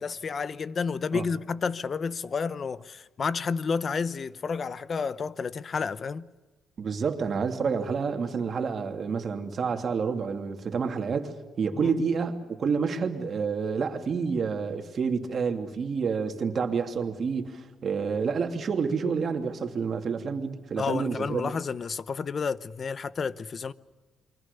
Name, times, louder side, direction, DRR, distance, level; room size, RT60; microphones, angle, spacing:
voice 1, 0.0-6.3 11.8-11.9 20.8-23.7, left 5 dB, 40° left, 0.9 m, -30 dB
voice 2, 6.8-21.5, right 5 dB, 45° right, 2.8 m, -29 dB
28.5 x 23.5 x 6.9 m
cardioid pair, 110°, 0 cm